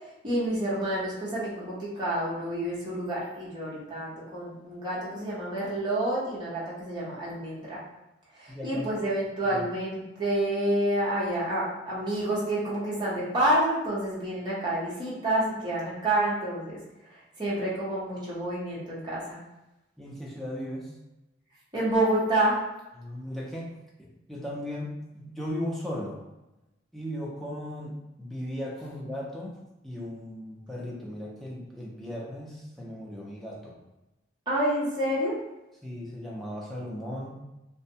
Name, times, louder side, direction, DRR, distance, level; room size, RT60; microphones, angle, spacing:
voice 1, 0.2-7.8 8.4-16.8 17.4-19.4 21.7-22.6 34.5-35.4, right 1 dB, 25° right, -8 dB, 0.7 m, -28 dB
voice 2, 8.5-8.9 9.5-9.6 20.0-20.9 23.0-26.2 26.9-33.8 35.8-37.3, equal, ahead, -4 dB, 0.4 m, -37 dB
2.5 x 2.1 x 2.7 m, 0.98 s
head